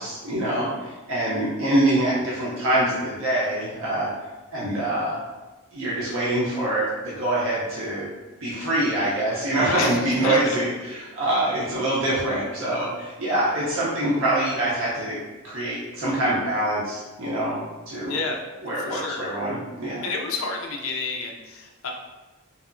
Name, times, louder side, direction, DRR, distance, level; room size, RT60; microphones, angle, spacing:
voice 1, 0.0-4.1 4.5-5.2 5.7-8.1 8.4-15.2 15.4-17.6 17.9-18.2 18.6-20.1, right 1 dB, 60° right, -7 dB, 0.6 m, -25 dB
voice 2, 9.7-10.4 18.1-18.4 18.8-19.3 20.0-21.9, left 3 dB, 70° left, 1 dB, 0.4 m, -29 dB
2.7 x 2.3 x 2.5 m, 1.2 s
head